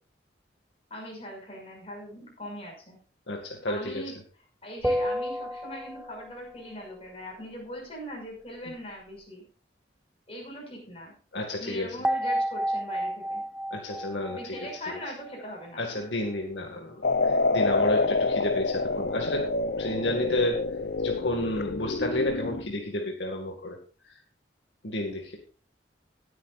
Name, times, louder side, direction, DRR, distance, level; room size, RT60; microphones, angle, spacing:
voice 1, 0.9-3.0 3.7-4.2 4.6-9.4 10.3-11.1 11.5-13.4 14.3-16.1, equal, 35° left, 0 dB, 6.0 m, -41 dB
voice 2, 3.3-4.0 11.3-12.0 13.7-14.4 15.8-19.5 19.8-20.6 21.0-23.8 24.8-25.4, left 1 dB, 80° left, 1 dB, 2.1 m, -31 dB
sound 1, 4.8-6.4 12.0-15.4, equal, 5° right, 0.4 m, -30 dB
sound 2, 17.0-22.7, left 3 dB, 60° left, 0.7 m, -27 dB
19.5 x 9.3 x 2.5 m, 0.38 s
head